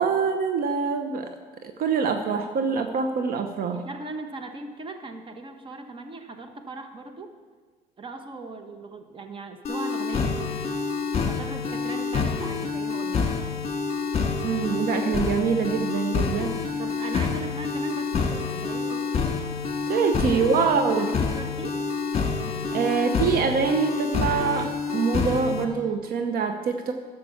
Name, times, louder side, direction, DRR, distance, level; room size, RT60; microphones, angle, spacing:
voice 1, 0.0-1.3 1.6-3.8 14.4-16.8 19.9-21.1 22.7-26.9, right 6 dB, 60° right, 7 dB, 0.8 m, -25 dB
voice 2, 3.7-7.3 8.0-10.6 11.1-13.3 16.8-19.1 20.3-21.8, right 2 dB, 30° right, 7 dB, 1.2 m, -38 dB
sound 1, 9.6-25.6, left 5 dB, 40° left, 1.9 m, -27 dB
11.0 x 6.7 x 7.1 m, 1.5 s
cardioid pair, 110°, 17 cm